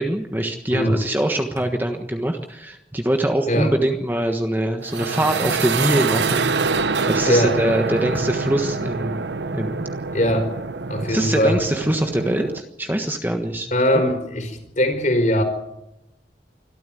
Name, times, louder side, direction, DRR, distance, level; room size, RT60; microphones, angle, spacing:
voice 1, 0.0-6.8 7.1-9.8 11.1-13.7, right 1 dB, 10° right, 4 dB, 1.4 m, -23 dB
voice 2, 0.7-1.0 3.5-3.7 7.2-7.5 10.1-10.5 10.9-11.6 13.7-15.4, equal, 45° left, 4 dB, 4.9 m, -20 dB
sound 1, 4.8-12.6, right 4 dB, 80° right, 0.9 m, -25 dB
25.0 x 13.5 x 9.2 m, 0.87 s
head